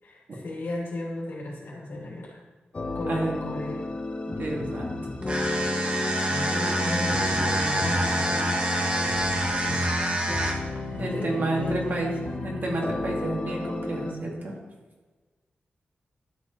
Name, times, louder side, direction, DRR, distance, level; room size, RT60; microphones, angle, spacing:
voice 1, 0.0-2.4 2.9-3.8 6.2-8.6 11.1-12.1, left 2 dB, 80° left, -5 dB, 3.1 m, -35 dB
sound 1, 2.7-14.1, left 2 dB, 35° left, 1.0 m, -32 dB
voice 2, 3.1-3.4 4.3-5.0 11.0-12.1 12.4-14.5, right 2 dB, 60° right, -2 dB, 2.3 m, -30 dB
sound 2, 5.2-10.8, right 1 dB, 30° right, 1.3 m, -27 dB
12.5 x 7.7 x 3.3 m, 1.3 s
wide cardioid pair, 100°, 4 cm